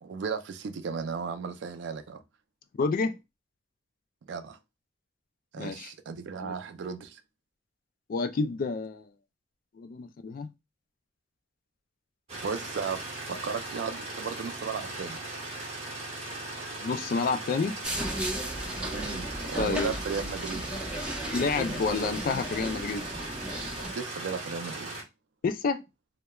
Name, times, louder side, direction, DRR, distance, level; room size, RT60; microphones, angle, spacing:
voice 1, 0.0-2.2 4.2-4.6 5.5-7.2 12.4-15.2 18.9-20.7 23.8-24.9, right 5 dB, 70° right, 0.3 m, -35 dB
voice 2, 2.8-3.2 5.6-5.9 6.4-6.6 8.1-9.1 9.8-10.5 16.8-17.8 19.6-20.0 21.3-23.1 25.4-25.8, left 4 dB, 50° left, 0.3 m, -29 dB
sound 1, 12.3-25.0, right 2 dB, 35° right, 0.8 m, -39 dB
sound 2, 17.8-23.9, right 1 dB, 5° right, 0.6 m, -35 dB
2.9 x 2.1 x 2.2 m
head